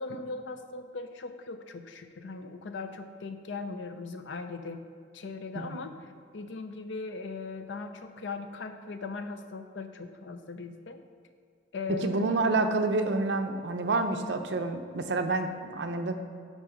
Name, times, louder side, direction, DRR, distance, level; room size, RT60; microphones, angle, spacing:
voice 1, 0.0-4.8 5.1-6.0 6.3-11.0 11.7-12.3, left 4 dB, 75° left, 8 dB, 0.6 m, -39 dB
voice 2, 11.9-16.1, right 3 dB, 65° right, 7 dB, 0.6 m, -28 dB
9.9 x 3.9 x 5.0 m, 2.3 s
head